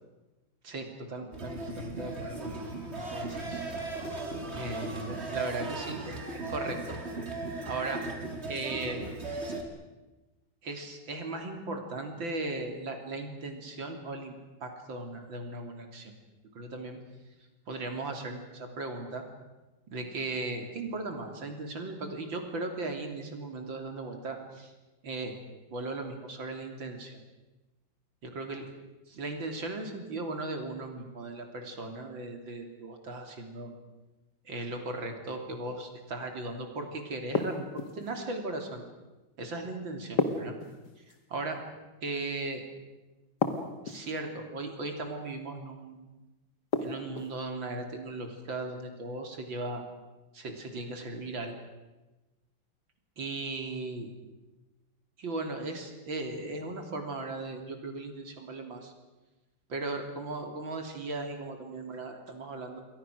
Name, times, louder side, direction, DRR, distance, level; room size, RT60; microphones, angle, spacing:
voice 1, 0.6-2.6 2.9-3.6 4.5-7.0 7.6-8.0 8.5-9.0 10.6-16.1 16.5-17.0 17.7-19.2 19.9-24.7 25.0-25.3 25.7-27.2 28.2-28.7 29.1-33.7 34.4-38.8 39.4-40.6 41.3-41.6 42.0-42.6 43.9-46.0 46.8-49.8 50.3-51.5 53.2-54.1 55.2-58.9 59.7-62.8, right 2 dB, 90° right, 4 dB, 3.9 m, -37 dB
sound 1, 1.3-9.6, right 2 dB, 35° right, 3.1 m, -37 dB
sound 2, 37.3-38.1 40.2-41.2 43.4-44.2 46.7-47.4, left 4 dB, 60° left, 2.3 m, -31 dB
28.5 x 22.5 x 6.4 m, 1.1 s
omnidirectional pair, 2.0 m